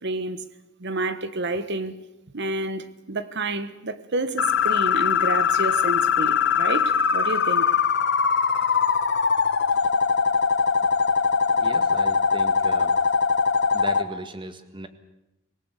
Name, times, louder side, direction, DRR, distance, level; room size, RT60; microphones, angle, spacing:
voice 1, 0.0-0.4 0.8-1.9 2.3-7.6, right 2 dB, 55° right, 13 dB, 1.5 m, -29 dB
sound 1, 4.4-14.0, left 6 dB, 55° left, 1.3 m, -21 dB
voice 2, 11.6-13.0 13.7-14.9, right 1 dB, 25° right, 10 dB, 1.7 m, -37 dB
25.5 x 18.5 x 8.3 m, 0.92 s
head